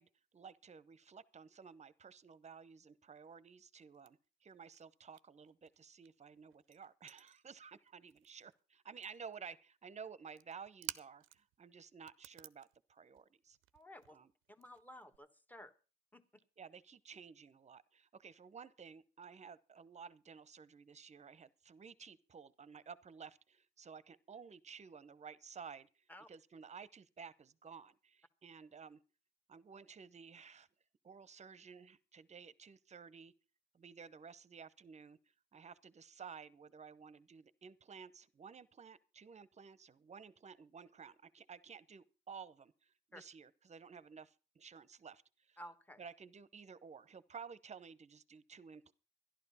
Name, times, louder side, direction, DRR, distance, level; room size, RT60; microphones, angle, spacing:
voice 1, 0.0-13.6 14.1-14.3 16.6-29.0 29.5-30.7 31.0-33.3 33.7-35.2 35.5-45.6 46.0-48.9, right 6 dB, 35° right, 0.8 m, -54 dB
sound 1, 3.8-4.8 5.1-8.6 8.8-9.4 10.3-11.6 11.9-15.2, right 15 dB, 90° right, 0.6 m, -52 dB
voice 2, 13.7-14.2 14.5-15.7 16.1-16.2 26.1-26.3 43.1-43.2 45.6-46.0, equal, 10° left, 1.4 m, -54 dB
12.0 x 11.5 x 5.5 m
cardioid pair, 90°, 20 cm